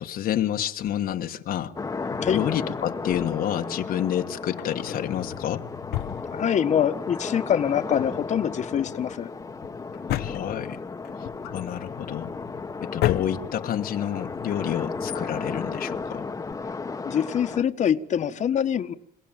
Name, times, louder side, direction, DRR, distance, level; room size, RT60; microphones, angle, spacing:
voice 1, 0.0-1.7 2.3-5.7 10.1-10.8 11.2-12.4 12.8-16.3, left 11 dB, 65° left, 1.4 m, -29 dB
sound 1, 1.8-17.6, left 4 dB, 20° left, 1.3 m, -34 dB
Drawer open or close, 2.1-3.6 4.4-7.0 7.2-7.3 7.8-16.5, left 14 dB, 85° left, 1.0 m, -35 dB
voice 2, 6.3-9.3 17.0-18.9, left 9 dB, 45° left, 1.4 m, -24 dB
28.0 x 17.5 x 9.0 m
cardioid pair, 125°, 16 cm